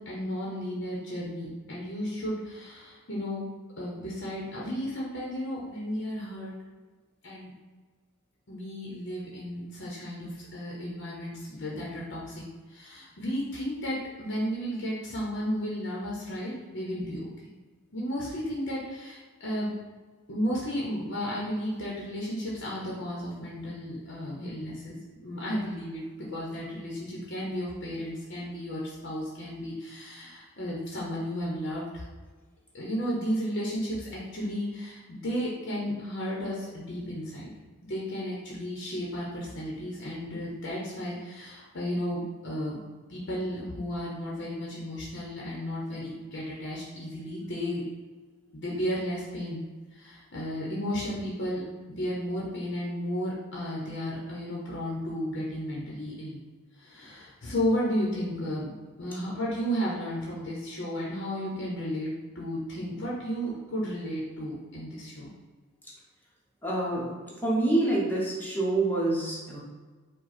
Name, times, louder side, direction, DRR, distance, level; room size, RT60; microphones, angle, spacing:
voice 1, 0.0-3.5 3.8-6.5 7.2-7.5 8.5-17.5 17.9-19.7 20.3-32.0 32.7-37.5 37.9-42.8 43.1-47.8 48.5-49.6 49.9-51.6 52.0-56.4 56.7-58.7 59.0-65.3, equal, 55° left, -5 dB, 0.9 m, -33 dB
voice 2, 66.6-69.6, right 2 dB, 10° left, -5 dB, 1.0 m, -27 dB
4.8 x 2.3 x 4.2 m, 1.4 s
head